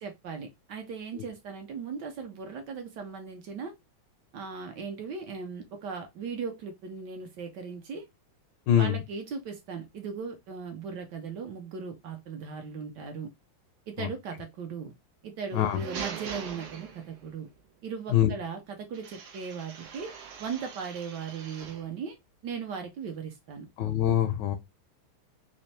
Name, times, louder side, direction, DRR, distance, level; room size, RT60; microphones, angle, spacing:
voice 1, 0.0-3.7 4.3-8.0 8.7-13.3 13.9-14.9 15.2-17.5 17.8-20.1 20.4-22.2 22.4-23.7, right 5 dB, 70° right, 1.1 m, -38 dB
voice 2, 8.7-9.0 14.0-14.1 15.5-15.8 18.1-18.3 23.8-24.6, left 11 dB, 75° left, 1.1 m, -24 dB
sound 1, 15.4-17.4 18.9-21.9, right 7 dB, 85° right, 1.6 m, -42 dB
4.1 x 2.6 x 3.2 m
omnidirectional pair, 2.2 m